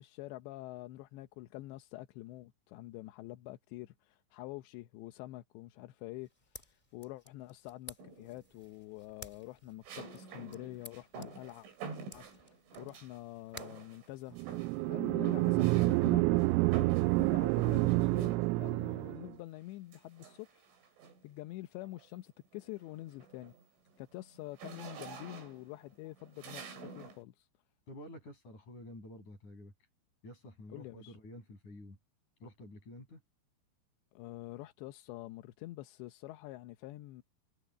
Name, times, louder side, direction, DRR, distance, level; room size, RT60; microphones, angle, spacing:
voice 1, 0.0-11.7 12.1-14.4 14.9-16.4 17.2-20.9 21.2-23.5 24.0-27.5 30.7-31.2 34.1-37.2, left 17 dB, 75° left, 2.8 m, -47 dB
sound 1, 6.2-14.8, left 1 dB, 10° left, 5.1 m, -56 dB
sound 2, 8.0-8.5 9.8-13.2 13.5-14.1 14.4-18.8 19.9-21.3 21.8-22.1 22.4-27.2, right 5 dB, 70° right, 7.4 m, -48 dB
sound 3, 14.4-19.3, right 23 dB, 90° right, 3.2 m, -28 dB
voice 2, 15.1-15.9 27.9-29.7 30.2-32.0 32.4-33.2, left 1 dB, 35° left, 9.1 m, -50 dB
omnidirectional pair, 5.7 m